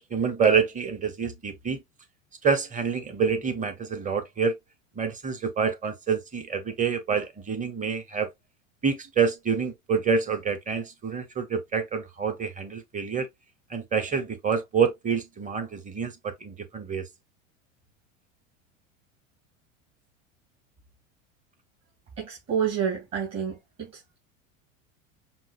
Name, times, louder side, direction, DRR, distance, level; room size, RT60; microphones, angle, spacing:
voice 1, 0.0-1.8 2.4-4.5 5.0-8.3 8.8-13.3 13.7-17.0, right 6 dB, 20° right, 1.0 m, -27 dB
voice 2, 22.2-23.9, right 7 dB, 40° right, 2.8 m, -29 dB
5.5 x 2.6 x 2.5 m
hypercardioid pair, 90°, 41 cm